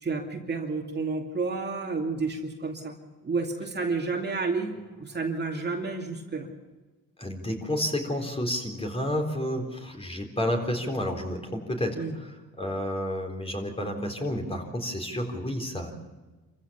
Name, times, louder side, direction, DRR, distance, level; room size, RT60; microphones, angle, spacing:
voice 1, 0.0-2.9 3.2-4.7 5.0-6.5 12.0-12.1, right 4 dB, 35° right, 1 dB, 2.6 m, -30 dB
voice 2, 7.2-15.9, equal, 20° left, 3 dB, 4.0 m, -30 dB
26.5 x 15.5 x 7.1 m, 1.2 s
cardioid pair, 90°, 30 cm